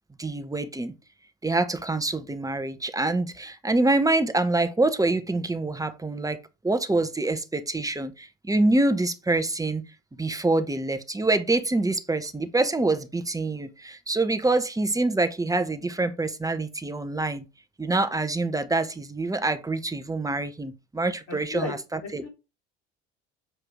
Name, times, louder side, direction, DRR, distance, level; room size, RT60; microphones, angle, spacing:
voice 1, 0.2-0.9 1.4-6.4 6.6-9.8 10.2-17.4 17.8-21.8 22.1-22.2, right 2 dB, 10° right, 1.1 m, -25 dB
voice 2, 21.3-22.3, left 4 dB, 70° left, 4.7 m, -35 dB
7.9 x 4.9 x 3.6 m
figure-of-eight pair, 65°, 37 cm